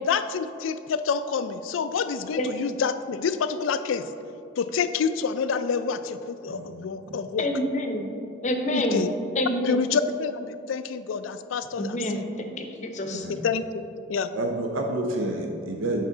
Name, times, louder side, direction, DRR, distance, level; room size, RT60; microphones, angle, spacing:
voice 1, 0.1-4.1 4.6-7.5 8.7-9.1 9.6-12.3 13.3-14.3, left 6 dB, 85° left, 11 dB, 0.4 m, -28 dB
voice 2, 7.4-8.1 8.4-9.0 9.3-9.8 11.8-13.3, left 1 dB, 35° left, 4 dB, 0.6 m, -27 dB
voice 3, 13.1-13.4 14.3-16.0, right 2 dB, 85° right, 2 dB, 0.6 m, -29 dB
7.4 x 5.8 x 3.8 m, 2.7 s
head